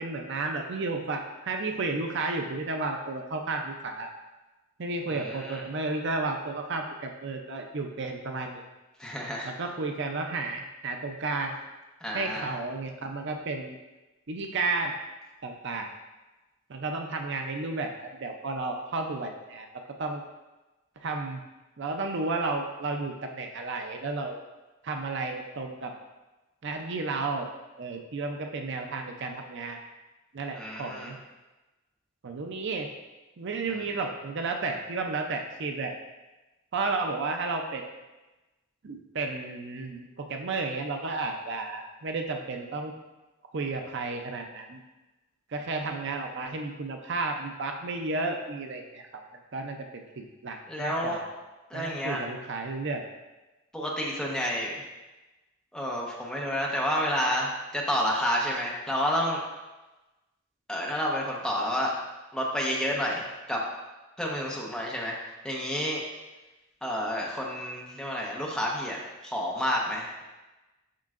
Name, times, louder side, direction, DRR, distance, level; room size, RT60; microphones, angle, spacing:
voice 1, 0.0-4.1 4.8-8.6 9.4-11.6 12.1-13.8 14.3-14.9 15.4-15.9 16.7-19.7 20.0-20.2 21.0-21.4 21.8-24.4 24.8-25.9 26.6-27.5 27.8-29.8 30.3-31.2 32.2-32.9 33.4-35.9 36.7-37.9 38.8-42.9 43.5-44.8 45.5-49.1 49.5-51.3 51.7-53.0, right 3 dB, 60° right, 4 dB, 0.5 m, -32 dB
voice 2, 5.1-5.6 9.0-9.5 12.0-12.5 30.5-31.1 33.7-33.8 50.7-51.2 51.7-52.2 53.7-54.8 55.7-59.4 60.7-61.9 62.3-63.6 64.2-65.2 65.4-66.0 66.8-70.2, equal, 5° left, -3 dB, 0.9 m, -30 dB
7.5 x 5.5 x 2.5 m, 1.1 s
head